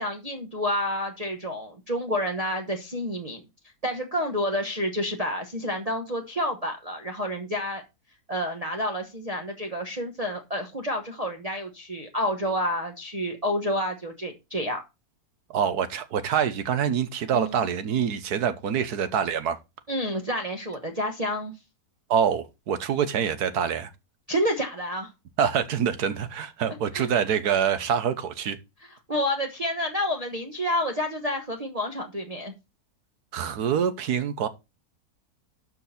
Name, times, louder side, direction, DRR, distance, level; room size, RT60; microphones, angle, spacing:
voice 1, 0.0-3.4 3.8-7.8 8.3-14.8 17.3-17.6 19.9-21.5 24.3-25.1 26.9-27.1 29.1-32.5, equal, 30° right, 1.0 m, -29 dB
voice 2, 15.5-19.6 22.1-23.9 25.4-28.6 33.3-34.5, right 8 dB, 80° right, 1.5 m, -25 dB
12.5 x 4.7 x 4.1 m
omnidirectional pair, 1.6 m